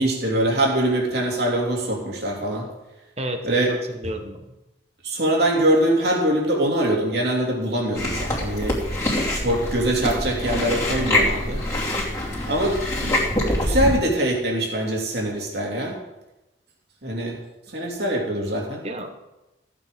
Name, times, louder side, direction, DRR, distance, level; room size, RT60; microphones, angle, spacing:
voice 1, 0.0-2.7 3.4-3.7 5.0-8.7 9.3-11.6 12.5-13.2 13.6-16.0 17.0-17.4 17.7-18.8, right 1 dB, 60° right, -1 dB, 3.0 m, -23 dB
voice 2, 3.2-4.5 18.8-19.1, equal, 35° right, 5 dB, 1.3 m, -31 dB
Chewing mastication, 7.9-14.0, left 1 dB, 15° left, 2.8 m, -25 dB
14.5 x 8.6 x 5.3 m, 0.99 s
head